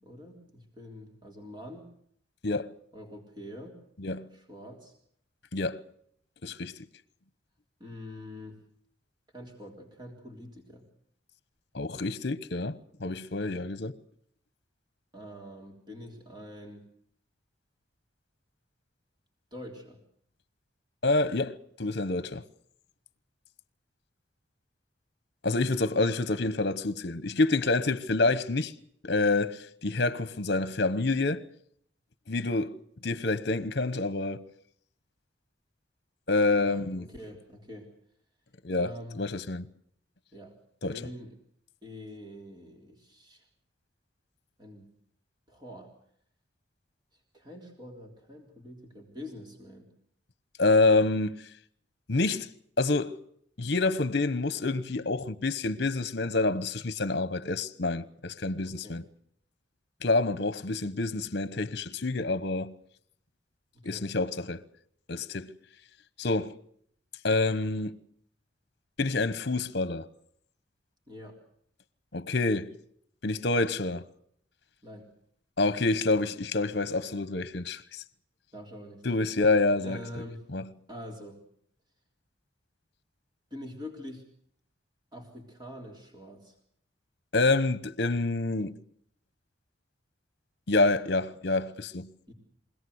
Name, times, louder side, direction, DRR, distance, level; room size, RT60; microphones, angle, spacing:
voice 1, 0.0-1.9 2.9-3.8 4.3-4.9 7.8-8.6 9.3-10.9 15.1-16.8 19.5-20.0 36.6-37.9 38.8-39.2 40.3-40.6 40.9-41.3 41.8-43.4 44.6-44.9 45.5-45.9 47.3-49.9 58.6-59.0 63.7-64.1 71.1-71.4 74.8-75.0 78.5-79.2 79.8-80.4 80.9-81.4 83.5-84.2 85.1-86.6 92.3-92.4, left 1 dB, 25° right, 3.6 m, -45 dB
voice 2, 2.4-2.7 4.0-4.3 5.5-5.8 6.4-6.7 11.7-14.0 21.0-22.4 25.4-28.7 29.0-31.4 32.3-32.8 33.0-34.4 36.3-37.0 38.6-38.9 39.2-39.7 40.8-41.0 50.6-51.4 52.1-52.5 52.8-53.2 53.6-59.0 60.0-62.7 63.8-64.6 65.1-65.5 66.2-66.5 67.2-68.0 69.0-70.0 72.1-72.7 73.2-74.0 75.6-77.8 79.0-80.0 80.5-80.6 87.3-88.8 90.7-92.1, left 3 dB, 60° left, 1.1 m, -27 dB
24.5 x 18.0 x 8.1 m
head